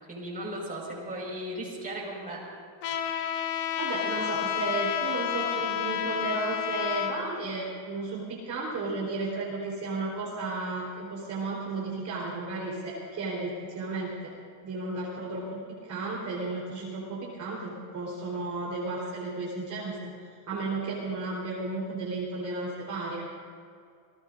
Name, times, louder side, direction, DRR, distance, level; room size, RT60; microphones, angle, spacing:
voice 1, 0.1-2.4, right 1 dB, 20° right, -3 dB, 5.2 m, -36 dB
Trumpet, 2.8-7.1, left 9 dB, 60° left, 1.6 m, -30 dB
voice 2, 3.8-14.3 14.6-20.1 20.5-23.3, right 3 dB, 40° right, -5 dB, 4.1 m, -33 dB
28.5 x 18.0 x 2.6 m, 2.3 s
cardioid pair, 150°, 46 cm